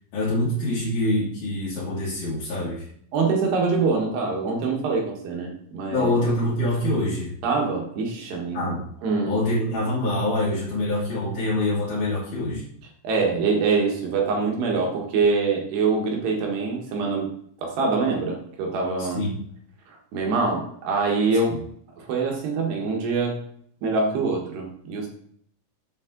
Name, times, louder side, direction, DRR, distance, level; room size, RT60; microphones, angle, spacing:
voice 1, 0.1-2.9 5.9-7.3 8.5-8.9 9.2-12.7 19.0-19.3 21.5-21.6, left 1 dB, 50° left, -7 dB, 3.0 m, -25 dB
voice 2, 3.1-6.1 7.4-8.6 9.0-9.3 13.0-17.3 17.6-19.2 20.1-21.6 22.0-23.4 23.8-25.1, right 4 dB, 65° right, 0 dB, 3.0 m, -24 dB
7.8 x 7.3 x 3.8 m, 0.64 s
omnidirectional pair, 5.8 m